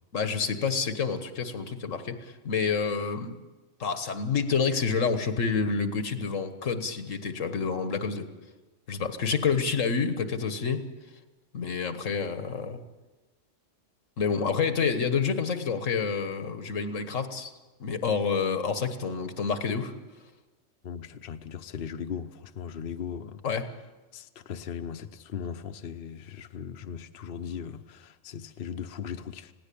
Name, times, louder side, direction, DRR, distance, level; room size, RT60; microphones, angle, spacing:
voice 1, 0.1-2.2 2.4-3.4 3.8-8.3 8.9-10.8 11.5-12.8 14.2-17.5 17.8-19.9 23.4-23.7, left 5 dB, 85° left, 1.7 m, -28 dB
voice 2, 20.8-23.5 24.1-29.5, left 7 dB, 50° left, 1.0 m, -38 dB
20.5 x 16.5 x 8.5 m
omnidirectional pair, 1.3 m